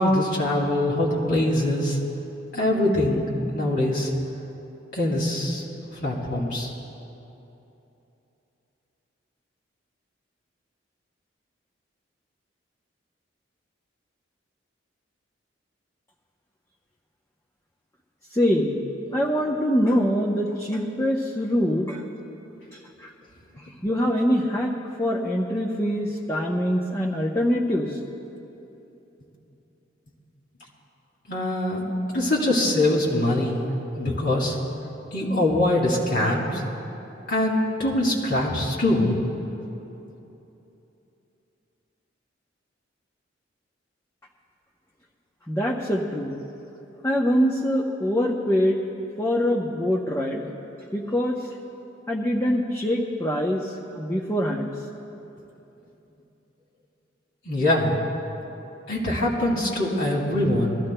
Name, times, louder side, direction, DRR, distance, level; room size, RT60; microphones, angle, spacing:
voice 1, 0.0-2.0 2.5-3.2 3.5-4.1 4.9-5.6 5.9-6.7 31.3-33.6 34.0-34.6 35.1-36.6 37.3-39.2 57.5-58.0 58.9-60.8, left 1 dB, 65° left, -5 dB, 2.1 m, -23 dB
voice 2, 18.3-18.8 19.1-22.0 23.0-23.1 23.8-24.7 25.0-28.0 45.5-46.4 47.0-48.8 49.2-50.5 50.9-51.4 52.1-54.7, equal, 15° left, -3 dB, 0.7 m, -24 dB
22.0 x 14.0 x 2.2 m, 2.9 s
head